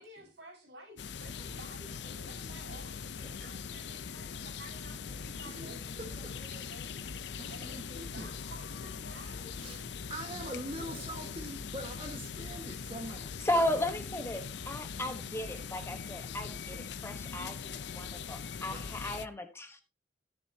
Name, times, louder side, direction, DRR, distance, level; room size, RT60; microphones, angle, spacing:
voice 1, 0.0-9.6 10.3-11.3, right 1 dB, 70° right, 5.0 m, -52 dB
sound 1, 1.0-19.3, left 6 dB, 70° left, 0.6 m, -41 dB
voice 2, 5.5-6.3 7.4-8.3 9.6-9.8 10.1-13.2 18.7-18.9, right 1 dB, 30° right, 1.6 m, -43 dB
voice 3, 13.4-17.6 17.9-19.8, left 1 dB, 15° left, 1.1 m, -35 dB
13.5 x 10.0 x 2.8 m
head